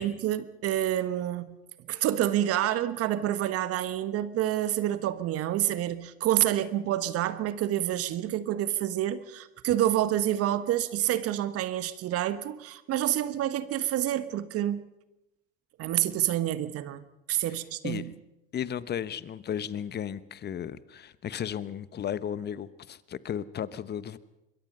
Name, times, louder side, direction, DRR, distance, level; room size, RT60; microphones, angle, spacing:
voice 1, 0.0-1.6 1.9-14.9 15.8-18.1, right 12 dB, 50° right, 1.3 m, -28 dB
voice 2, 18.5-24.2, left 9 dB, 35° left, 1.1 m, -35 dB
26.0 x 22.0 x 5.5 m
hypercardioid pair, 75°, 30 cm